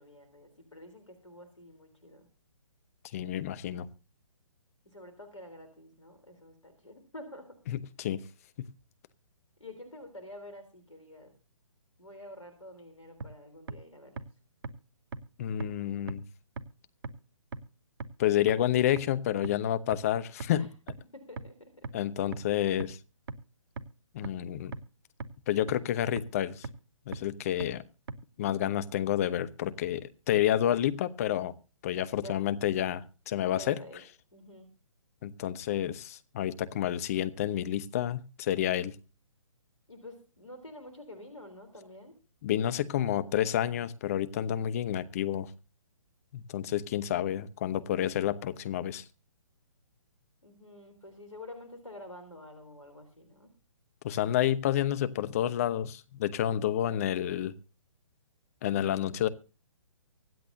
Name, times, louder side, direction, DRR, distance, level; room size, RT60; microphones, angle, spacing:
voice 1, 0.0-2.3 4.9-7.5 9.6-11.3 12.0-14.2 20.6-20.7 21.1-21.9 32.2-32.4 33.6-34.0 34.3-34.7 39.9-42.1 50.4-53.5, left 1 dB, 75° left, 8 dB, 3.6 m, -48 dB
voice 2, 3.1-3.9 7.7-8.2 8.6-8.7 15.4-16.2 18.2-20.7 21.9-23.0 24.1-24.7 25.5-26.7 27.1-27.8 28.4-31.5 31.8-33.8 35.2-39.0 42.4-45.5 46.3-49.0 54.0-57.5 58.6-59.3, left 11 dB, 30° left, 13 dB, 0.9 m, -29 dB
sound 1, 13.2-13.3 13.7-13.8 14.2-14.3 14.6-14.7 15.1-15.2 15.6-15.7 16.1-16.2 16.6-16.7 17.0-17.1 17.5-17.6 18.0-18.1 18.5-18.6 19.0-19.1 19.4-19.5 19.9-20.0 20.4-20.5 20.9-21.0 21.4-21.5 21.8-21.9 22.3-22.4 22.8-22.9 23.3-23.4 23.8-23.9 24.2-24.3 24.7-24.8 25.2-25.3 25.7-25.8 26.2-26.3 26.6-26.7 27.1-27.2 27.6-27.7 28.1-28.2, right 4 dB, 50° right, 1.1 m, -36 dB
24.5 x 8.3 x 2.7 m, 0.34 s
figure-of-eight pair, 135°, 17 cm